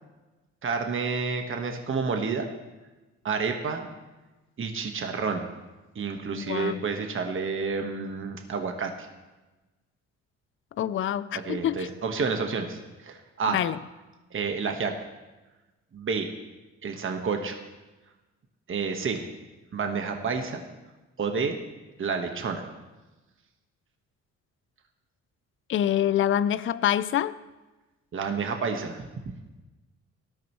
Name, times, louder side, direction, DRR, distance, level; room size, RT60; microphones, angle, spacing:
voice 1, 0.6-2.5 3.2-3.9 4.6-5.5 5.9-9.1 11.4-13.6 14.3-14.9 15.9-16.3 16.8-17.6 18.7-19.3 19.7-20.6 21.2-21.6 22.0-22.7 28.1-29.1, right 5 dB, 45° right, 4 dB, 1.4 m, -29 dB
voice 2, 6.3-6.8 10.8-11.9 13.5-13.8 25.7-27.3, left 10 dB, 45° left, 16 dB, 0.5 m, -26 dB
17.5 x 12.5 x 3.1 m, 1.1 s
cardioid pair, 90°, 30 cm